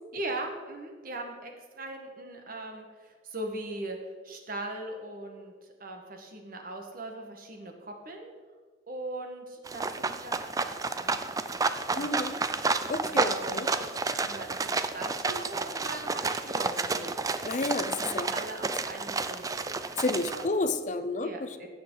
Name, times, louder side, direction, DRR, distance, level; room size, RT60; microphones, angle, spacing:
voice 1, 0.1-4.0 4.2-5.5 5.8-8.3 8.9-11.2 11.9-12.2 13.1-13.7 14.3-17.3 18.0-19.7 20.3-20.5 21.2-21.7, right 2 dB, 55° right, 3 dB, 1.5 m, -40 dB
sound 1, 9.7-20.5, right 4 dB, 20° right, 0.4 m, -31 dB
voice 2, 11.9-12.4 12.9-13.7 17.5-18.3 20.0-21.7, left 2 dB, 45° left, 10 dB, 0.6 m, -31 dB
16.0 x 6.8 x 3.9 m, 1.5 s
head